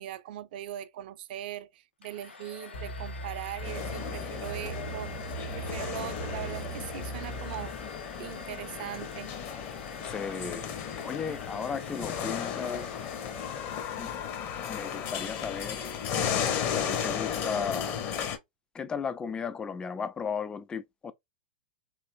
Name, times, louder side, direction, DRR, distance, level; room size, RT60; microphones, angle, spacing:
voice 1, 0.0-5.2 5.5-7.7 8.2-9.3, right 13 dB, 60° right, 0.4 m, -40 dB
Domestic sounds home sounds, 2.0-14.1, left 3 dB, 85° left, 0.7 m, -47 dB
sound 1, 2.7-8.4, right 3 dB, 70° left, 1.2 m, -40 dB
sound 2, 3.6-18.4, left 8 dB, 40° left, 0.7 m, -35 dB
voice 2, 10.0-10.6 11.0-13.0 14.0-14.1 14.7-15.9 16.7-18.0 18.7-21.1, left 6 dB, 15° left, 0.3 m, -35 dB
3.2 x 2.9 x 2.6 m
hypercardioid pair, 105°, 6 cm